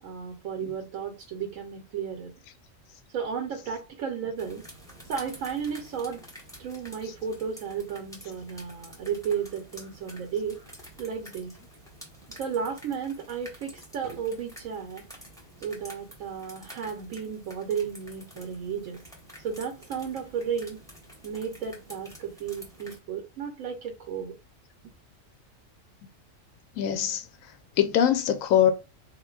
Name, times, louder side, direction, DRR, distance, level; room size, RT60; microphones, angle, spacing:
voice 1, 0.0-2.4 3.1-4.7 5.1-6.2 6.6-10.6 11.0-11.6 12.3-15.0 15.6-19.0 19.4-20.8 21.2-24.3, right 7 dB, 90° right, 1.0 m, -33 dB
sound 1, 4.4-23.0, equal, 5° left, 0.6 m, -49 dB
voice 2, 26.8-28.7, left 9 dB, 85° left, 1.0 m, -24 dB
3.6 x 2.5 x 2.2 m
omnidirectional pair, 1.4 m